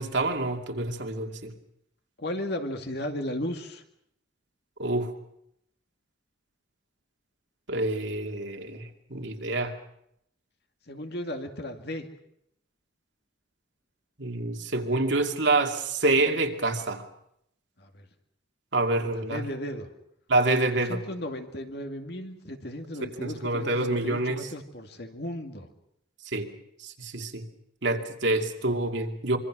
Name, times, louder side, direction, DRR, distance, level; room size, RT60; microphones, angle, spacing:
voice 1, 0.0-1.5 4.8-5.1 7.7-9.7 14.2-17.0 18.7-19.4 20.3-21.0 23.2-24.5 26.3-26.5 26.8-27.4 27.8-29.4, right 2 dB, 70° right, 3 dB, 2.4 m, -27 dB
voice 2, 2.2-3.8 10.9-12.1 14.9-15.1 17.8-18.1 19.1-19.9 20.7-25.7, left 1 dB, 55° left, 5 dB, 2.3 m, -35 dB
25.5 x 24.0 x 6.2 m, 0.75 s
head